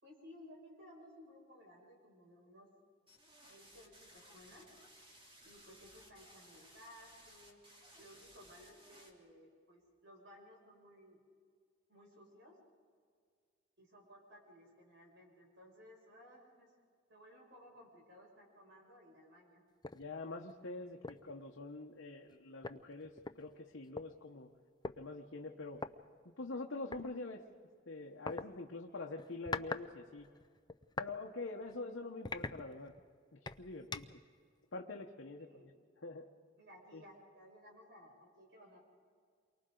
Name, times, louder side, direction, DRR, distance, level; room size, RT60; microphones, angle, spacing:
voice 1, 0.0-2.7 3.5-4.7 5.4-7.6 7.9-11.2 11.9-12.6 13.8-16.7 17.1-19.7 35.4-35.7 36.6-38.8, equal, 65° right, -1 dB, 6.4 m, -58 dB
sound 1, 3.1-9.1, right 1 dB, 25° right, 3.0 m, -60 dB
sound 2, 19.8-20.0 20.5-20.6 21.0-21.3 22.3-22.4 22.6-24.1 24.8-25.0 25.7-25.9 26.9-27.1 28.3-28.5 29.2-29.9 30.2-31.1 31.6-31.8 32.2-33.0 33.5-34.2, left 3 dB, 20° left, 0.5 m, -43 dB
voice 2, 19.9-24.5 24.9-25.8 26.4-27.4 27.9-30.3 31.0-32.9 33.3-34.1 34.7-35.7 36.0-36.3 36.9-37.0, left 3 dB, 65° left, 1 dB, 1.1 m, -45 dB
29.0 x 24.0 x 3.9 m, 2.1 s
head